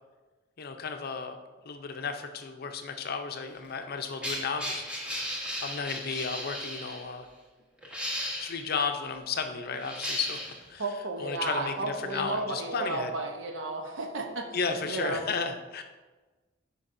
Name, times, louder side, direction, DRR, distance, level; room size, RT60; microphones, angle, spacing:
voice 1, 0.6-1.4 1.6-4.8 5.6-7.3 8.3-10.4 10.7-10.8 11.2-13.1 14.5-15.8, left 5 dB, 50° left, 6 dB, 0.6 m, -33 dB
sound 1, 3.5-7.0 7.8-8.6 9.7-10.6 11.4-11.5, equal, 5° right, 1.1 m, -35 dB
voice 2, 10.8-14.5 14.9-15.2, right 2 dB, 80° right, 4 dB, 0.9 m, -33 dB
8.1 x 5.2 x 2.6 m, 1.2 s
head